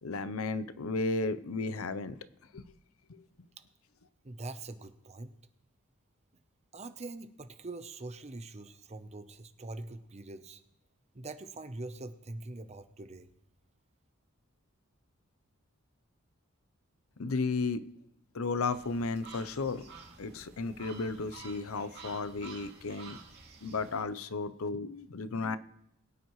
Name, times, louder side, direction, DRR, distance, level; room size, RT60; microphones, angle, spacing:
voice 1, 0.0-2.2 2.5-2.6 3.1-3.2 17.2-17.8 18.3-19.9 20.2-23.2 23.6-25.6, left 3 dB, 90° left, 14 dB, 0.7 m, -34 dB
voice 2, 4.2-5.3 6.7-10.6 11.1-13.3, right 2 dB, 30° right, 10 dB, 0.8 m, -43 dB
sound 1, 18.7-24.0, right 4 dB, 50° right, 2.6 m, -51 dB
21.5 x 9.1 x 3.1 m, 0.82 s
head